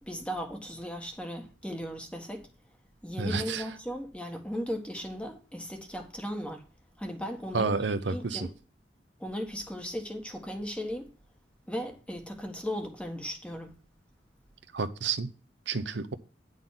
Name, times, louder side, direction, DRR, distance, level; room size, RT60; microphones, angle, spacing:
voice 1, 0.0-2.5 3.0-6.6 7.0-7.7 8.1-8.5 9.2-11.1 11.7-13.7, equal, 5° left, 1.5 m, -36 dB
voice 2, 3.2-3.6 7.5-8.5 14.7-15.3 15.7-16.1, right 4 dB, 80° right, 0.8 m, -30 dB
10.0 x 4.0 x 7.4 m
head